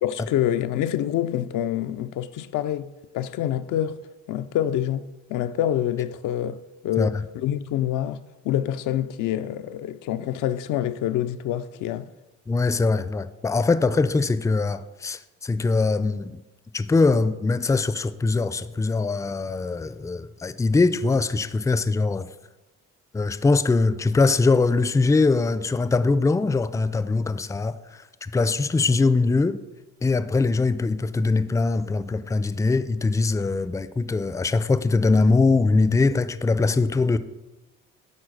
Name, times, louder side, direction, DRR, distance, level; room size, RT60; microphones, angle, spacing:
voice 1, 0.0-8.2 8.4-12.1, left 11 dB, 90° left, 0.5 m, -27 dB
voice 2, 12.5-16.4 16.7-22.3 23.1-27.7 28.2-29.6 30.0-37.2, left 3 dB, 10° left, 0.4 m, -22 dB
9.8 x 4.0 x 6.3 m
cardioid pair, 90°, 30 cm